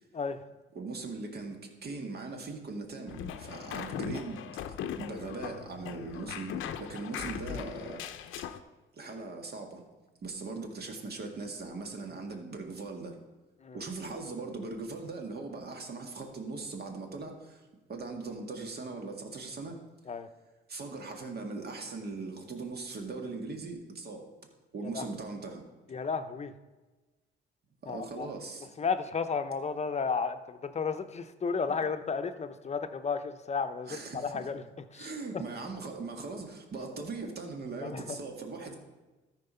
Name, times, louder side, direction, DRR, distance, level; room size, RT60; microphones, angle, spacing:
voice 1, 0.8-4.4 5.0-8.0 9.0-9.8 10.2-13.2 13.7-17.6 17.9-19.8 20.7-24.3 24.7-25.6 27.8-28.7 33.9-34.3 34.9-38.8, right 3 dB, 55° right, 3 dB, 1.8 m, -40 dB
sound 1, 3.1-8.6, left 9 dB, 80° left, 0.6 m, -39 dB
voice 2, 25.9-26.5 27.9-28.3 28.8-34.6 34.9-35.4 37.8-38.0, left 5 dB, 35° left, 10 dB, 0.7 m, -33 dB
13.5 x 4.6 x 5.6 m, 1.2 s
cardioid pair, 90°, 20 cm